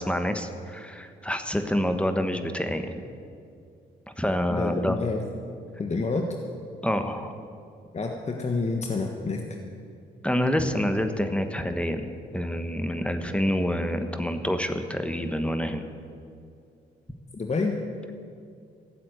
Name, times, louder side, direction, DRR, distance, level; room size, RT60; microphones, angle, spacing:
voice 1, 0.0-3.0 4.2-5.0 6.8-7.3 10.2-15.8, equal, 5° left, 7 dB, 1.3 m, -27 dB
voice 2, 4.5-5.2 5.8-6.3 7.9-9.4 17.3-17.7, left 3 dB, 35° left, 2 dB, 1.4 m, -28 dB
14.5 x 7.6 x 9.2 m, 2.4 s
supercardioid pair, 60°, 19 cm